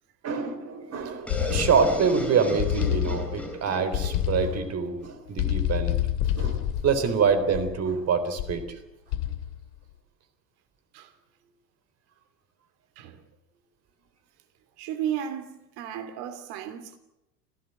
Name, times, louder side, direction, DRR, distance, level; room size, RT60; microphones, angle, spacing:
voice 1, 0.2-6.0 6.3-8.6, right 5 dB, 30° right, 3.9 m, -25 dB
sound 1, 1.3-2.2 2.6-3.5 3.9-4.7 5.4-7.9 8.4-8.7 9.1-9.6, left 12 dB, 50° left, 2.4 m, -28 dB
sound 2, 1.3-5.0, left 1 dB, 5° left, 7.2 m, -36 dB
voice 2, 14.8-17.0, right 9 dB, 50° right, 2.9 m, -34 dB
28.5 x 15.5 x 7.8 m
figure-of-eight pair, 85°, 49 cm